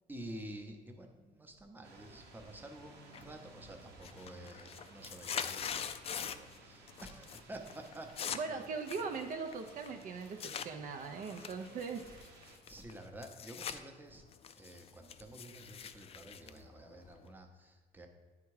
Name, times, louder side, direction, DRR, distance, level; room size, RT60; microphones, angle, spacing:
voice 1, 0.1-8.7 12.4-14.3 14.6-18.1, right 1 dB, 10° right, 3 dB, 0.7 m, -50 dB
sound 1, 1.8-12.6, right 2 dB, 85° right, 1.2 m, -57 dB
sound 2, 3.1-3.6 3.9-6.6 6.9-7.4 7.7-10.7 11.2-13.8 14.1-17.3, left 8 dB, 35° left, 0.4 m, -43 dB
voice 2, 8.3-12.2, right 5 dB, 55° right, 5 dB, 0.6 m, -40 dB
8.9 x 3.5 x 4.8 m, 1.3 s
cardioid pair, 110°, 17 cm